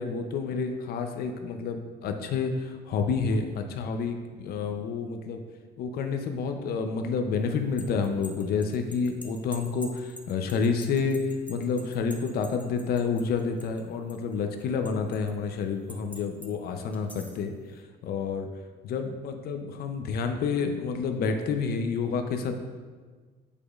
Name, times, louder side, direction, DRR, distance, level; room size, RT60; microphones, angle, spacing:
voice 1, 0.0-5.4 5.8-18.5 18.8-22.5, left 5 dB, 65° left, 6 dB, 0.6 m, -29 dB
sound 1, 7.5-13.8 14.1-15.3 15.9-16.5 16.9-17.4, equal, 10° left, 0.7 m, -46 dB
8.3 x 5.0 x 2.4 m, 1.5 s
cardioid pair, 110°, 17 cm